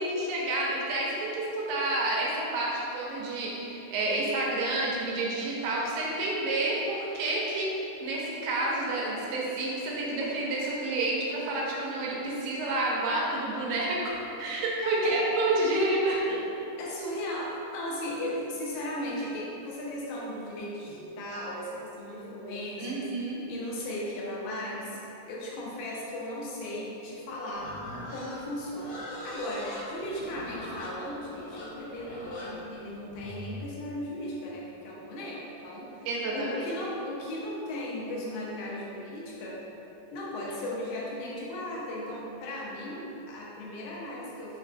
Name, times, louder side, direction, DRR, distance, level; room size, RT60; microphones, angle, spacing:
voice 1, 0.0-16.4 22.8-23.4 36.1-36.7, right 2 dB, 90° right, -4 dB, 2.4 m, -29 dB
voice 2, 14.8-15.3 16.8-25.0 25.3-27.8 28.1-36.1 36.3-39.6 40.1-44.6, left 1 dB, 85° left, -4 dB, 2.4 m, -36 dB
Livestock farm animals working animals, 27.6-33.6, left 1 dB, 65° left, 2.4 m, -41 dB
5.8 x 2.4 x 2.3 m, 3.0 s
omnidirectional pair, 4.1 m